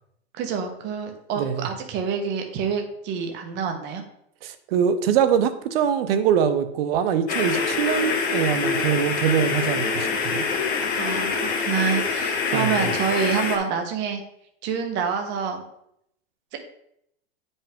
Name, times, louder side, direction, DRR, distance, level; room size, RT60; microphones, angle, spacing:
voice 1, 0.3-4.0 10.9-14.2 14.6-15.6 16.5-16.6, right 6 dB, 35° right, 4 dB, 1.2 m, -27 dB
voice 2, 1.4-1.7 4.4-10.5 12.5-12.9, right 8 dB, 65° right, 10 dB, 0.9 m, -23 dB
sound 1, 7.3-13.6, left 5 dB, 25° left, 1.1 m, -25 dB
8.5 x 5.4 x 3.6 m, 0.74 s
supercardioid pair, 150°, 32 cm